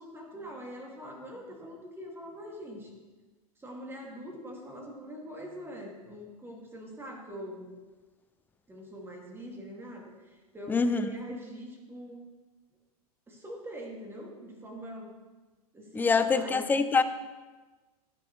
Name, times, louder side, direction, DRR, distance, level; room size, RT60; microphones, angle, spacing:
voice 1, 0.0-2.9 3.6-7.7 8.7-12.2 13.3-15.1 15.7-16.8, equal, 10° right, -1 dB, 2.1 m, -43 dB
voice 2, 10.7-11.1 15.9-17.0, left 4 dB, 10° left, 11 dB, 0.5 m, -25 dB
16.0 x 6.0 x 3.1 m, 1.3 s
figure-of-eight pair, 100°, 20 cm